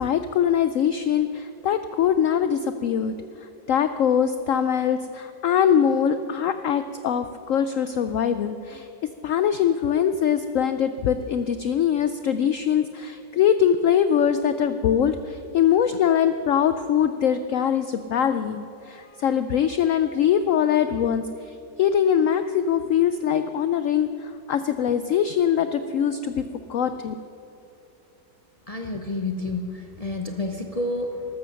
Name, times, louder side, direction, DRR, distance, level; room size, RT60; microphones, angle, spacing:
voice 1, 0.0-3.1 3.7-8.9 9.2-26.4 26.7-27.2, left 8 dB, 90° left, 11 dB, 0.7 m, -22 dB
voice 2, 28.7-31.3, left 2 dB, 50° left, 3 dB, 0.4 m, -29 dB
13.0 x 13.0 x 6.4 m, 2.8 s
omnidirectional pair, 1.9 m